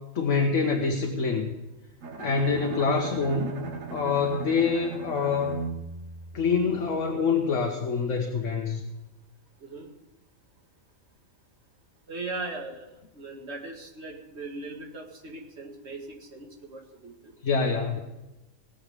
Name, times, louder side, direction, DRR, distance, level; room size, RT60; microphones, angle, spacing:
voice 1, 0.0-1.5 2.2-3.6 3.9-5.6 6.3-8.8 17.4-18.0, left 5 dB, 65° left, 1 dB, 1.6 m, -26 dB
Bowed string instrument, 2.0-7.0, right 4 dB, 70° right, 1.5 m, -37 dB
voice 2, 9.6-9.9 12.1-17.3, right 2 dB, 50° right, 1 dB, 2.3 m, -39 dB
19.5 x 7.4 x 6.7 m, 1.0 s
omnidirectional pair, 1.4 m